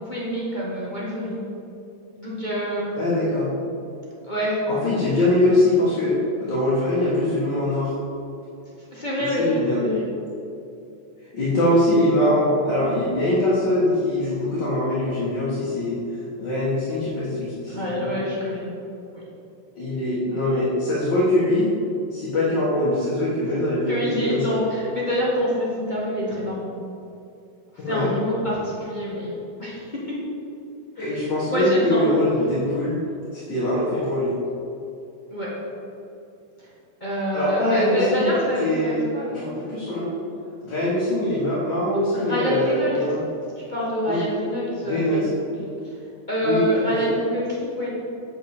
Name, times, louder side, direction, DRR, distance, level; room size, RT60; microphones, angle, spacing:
voice 1, 0.0-1.4 2.2-2.9 4.2-4.6 8.9-9.5 9.8-10.0 17.7-18.6 19.1-19.2 23.9-26.7 27.9-29.3 29.6-29.9 31.0-31.1 31.5-32.1 35.3-35.5 37.0-39.4 42.1-43.0 43.6-45.2 46.3-47.9, equal, 25° left, -7 dB, 1.9 m, -26 dB
voice 2, 3.0-3.5 4.7-7.9 9.2-9.8 11.3-18.2 19.8-21.7 22.1-24.6 27.8-28.1 31.0-33.0 33.3-34.3 37.3-38.3 38.6-39.0 39.3-40.1 40.6-43.2 44.0-44.2 44.8-45.3 46.4-47.0, left 1 dB, 60° left, -8 dB, 2.5 m, -22 dB
8.5 x 8.2 x 5.0 m, 2.7 s
omnidirectional pair, 2.2 m